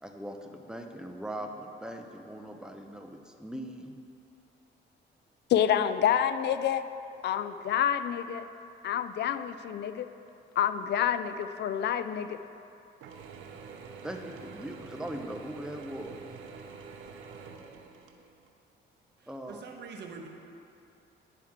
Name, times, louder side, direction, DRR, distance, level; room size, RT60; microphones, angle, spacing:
voice 1, 0.0-3.9 14.0-16.2 19.3-19.6, right 1 dB, 5° right, 3 dB, 0.7 m, -40 dB
voice 2, 5.5-6.8 7.2-8.5 8.8-10.1 10.6-12.4, left 9 dB, 60° left, 11 dB, 0.4 m, -28 dB
Mechanisms / Drill, 13.0-18.5, right 5 dB, 90° right, 0.5 m, -46 dB
voice 3, 19.2-20.3, right 5 dB, 60° right, 2 dB, 1.0 m, -44 dB
10.5 x 4.6 x 3.6 m, 2.7 s
cardioid pair, 90°, 20 cm